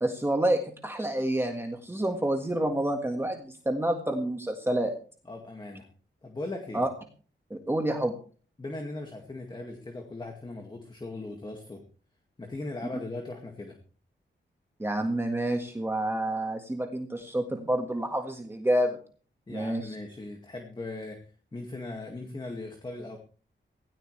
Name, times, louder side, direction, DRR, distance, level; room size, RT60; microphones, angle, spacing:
voice 1, 0.0-5.0 6.7-6.9 7.5-8.2 14.8-19.0 19.5-20.0, right 1 dB, 10° right, 3 dB, 1.7 m, -28 dB
voice 2, 5.3-5.9 6.2-6.8 8.6-11.8 12.4-13.8 19.5-21.2 21.5-23.2, left 2 dB, 25° left, 3 dB, 2.1 m, -39 dB
17.0 x 16.5 x 3.3 m, 0.41 s
wide cardioid pair, 140°, 20 cm